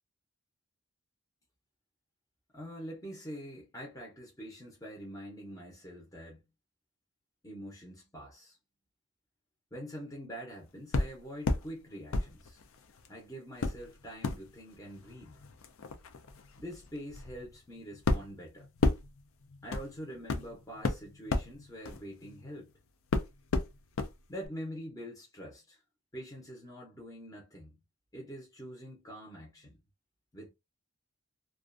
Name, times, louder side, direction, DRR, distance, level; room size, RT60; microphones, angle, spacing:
voice 1, 2.5-6.4 7.4-8.6 9.7-12.6 13.1-15.4 16.6-18.7 19.6-22.7 24.3-25.8 26.1-27.8 28.1-29.8 30.3-30.5, equal, 15° left, 0.6 m, -45 dB
sound 1, 10.9-11.7 12.1-13.1 13.6-22.7 23.1-24.1 24.4-24.5, left 3 dB, 70° left, 0.4 m, -33 dB
2.4 x 2.2 x 2.4 m
head